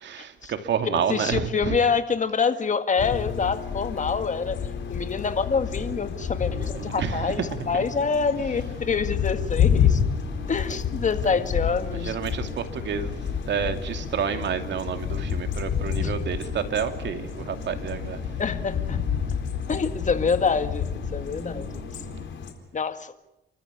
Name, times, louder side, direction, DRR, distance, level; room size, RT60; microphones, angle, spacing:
voice 1, 0.0-1.8 6.5-7.4 7.7-7.8 11.9-13.1 13.5-18.2, right 7 dB, 65° right, 7 dB, 2.7 m, -29 dB
voice 2, 0.9-4.6 4.9-10.0 10.5-12.2 16.0-16.1 18.4-19.0 19.7-21.7 22.7-23.1, left 5 dB, 40° left, 10 dB, 1.9 m, -26 dB
sound 1, 3.0-22.5, left 8 dB, 70° left, 4.4 m, -29 dB
sound 2, 5.7-22.2, right 5 dB, 45° right, 3.7 m, -44 dB
30.0 x 14.0 x 9.7 m, 0.90 s
cardioid pair, 90°, 20 cm